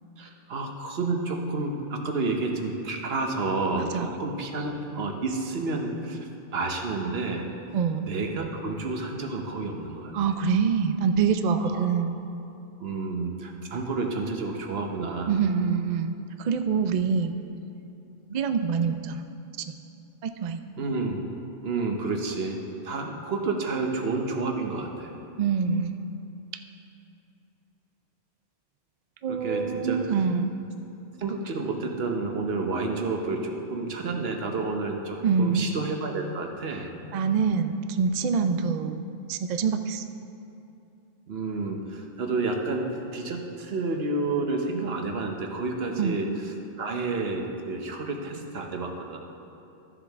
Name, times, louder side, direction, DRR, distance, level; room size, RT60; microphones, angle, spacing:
voice 1, 0.2-7.4 8.1-10.1 11.6-11.9 12.8-15.3 20.8-21.2 21.6-22.6 22.8-25.1 29.2-30.0 31.2-36.9 41.3-49.2, right 3 dB, 55° right, 3 dB, 1.1 m, -30 dB
voice 2, 3.7-4.1 7.7-8.1 10.1-12.2 15.3-17.3 18.3-19.2 20.2-20.6 25.4-25.9 29.2-30.5 35.2-35.7 37.1-39.0 39.3-40.0 46.0-46.2, right 6 dB, 85° right, 8 dB, 0.3 m, -25 dB
13.5 x 7.2 x 3.5 m, 2.7 s
omnidirectional pair, 1.3 m